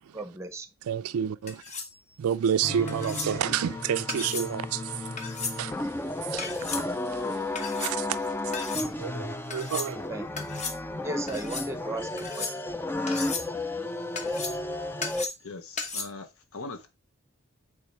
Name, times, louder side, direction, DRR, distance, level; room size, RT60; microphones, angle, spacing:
voice 1, 0.1-0.7 10.1-10.5 11.0-12.6 12.9-13.2, right 2 dB, 10° right, 0.7 m, -37 dB
voice 2, 0.9-1.6 2.2-4.8 5.6-5.7 6.3-6.4 7.8-8.1 9.0-10.0, right 8 dB, 85° right, 0.4 m, -28 dB
sound 1, 1.5-1.9 2.9-3.3 4.1-4.5 5.2-5.6 6.4-6.8 7.5-7.9 8.5-8.9 9.5-9.9 10.4-10.8 11.3-11.7 12.2-12.7 13.1-13.5 14.2-14.7 15.0-15.5 15.8-16.0, left 4 dB, 30° left, 1.0 m, -35 dB
sound 2, 2.6-15.3, left 2 dB, 10° left, 0.3 m, -33 dB
voice 3, 15.4-16.9, left 3 dB, 75° left, 0.9 m, -41 dB
8.4 x 3.5 x 4.3 m
head